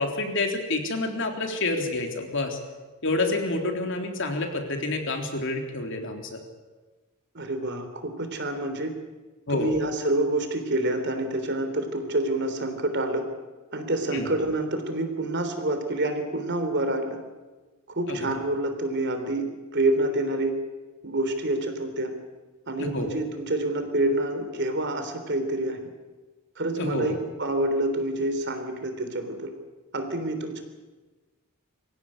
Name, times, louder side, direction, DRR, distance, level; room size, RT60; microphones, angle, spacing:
voice 1, 0.0-2.6 3.0-6.4 9.5-9.7 14.1-14.3 18.1-18.3 22.8-23.1 26.7-27.2, left 2 dB, 55° left, 3 dB, 3.5 m, -28 dB
voice 2, 7.3-8.9 9.5-13.2 13.7-17.2 17.9-20.6 21.0-22.1 22.7-25.8 26.6-29.5 29.9-30.6, right 1 dB, 50° right, 7 dB, 3.4 m, -27 dB
24.5 x 16.5 x 9.9 m, 1.3 s
head